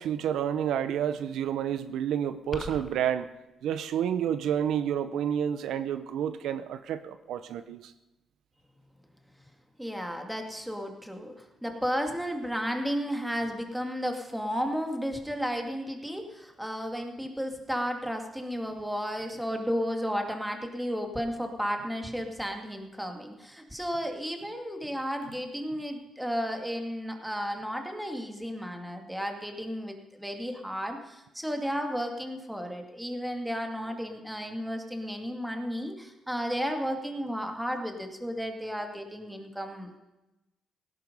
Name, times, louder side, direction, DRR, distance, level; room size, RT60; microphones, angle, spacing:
voice 1, 0.0-3.3 3.6-7.9, right 9 dB, 80° right, 12 dB, 0.7 m, -29 dB
sound 1, 2.5-3.0, left 3 dB, 30° left, 1.0 m, -39 dB
voice 2, 9.8-39.9, equal, 5° right, 4 dB, 2.4 m, -33 dB
17.0 x 11.0 x 5.5 m, 0.99 s
cardioid pair, 90°, 0 cm